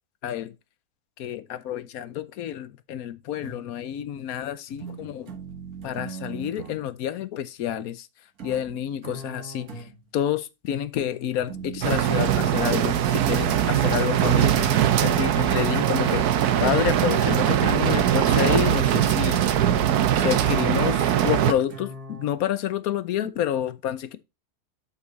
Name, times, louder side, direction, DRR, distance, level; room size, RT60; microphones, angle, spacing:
voice 1, 0.2-0.5 1.2-5.3 5.8-8.1 8.4-19.7 20.1-24.2, left 10 dB, 70° left, 1.2 m, -29 dB
sound 1, 3.4-3.9 4.8-6.9 8.4-10.2 11.5-13.1 14.4-22.3, right 4 dB, 70° right, 1.9 m, -39 dB
sound 2, 11.8-21.5, right 10 dB, 90° right, 1.3 m, -21 dB
8.2 x 5.8 x 4.0 m
omnidirectional pair, 1.6 m